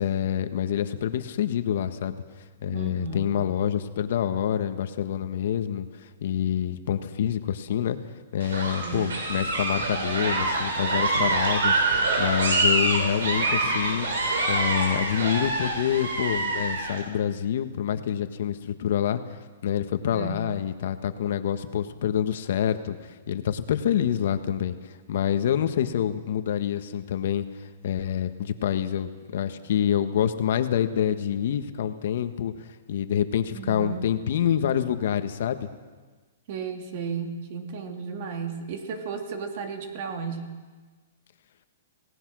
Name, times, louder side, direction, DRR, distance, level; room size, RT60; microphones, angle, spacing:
voice 1, 0.0-2.2 2.6-8.0 8.3-14.1 14.5-19.2 19.6-24.8 25.1-27.4 27.8-32.5 32.9-35.7, left 9 dB, 60° left, 9 dB, 1.5 m, -27 dB
voice 2, 2.7-3.3 8.8-9.1 20.1-20.5 33.6-34.1 36.5-40.5, right 5 dB, 45° right, 5 dB, 2.7 m, -34 dB
sound 1, 8.4-17.0, right 2 dB, 85° right, 5.5 m, -26 dB
27.0 x 18.5 x 6.3 m, 1.4 s
hypercardioid pair, 160°, 0 cm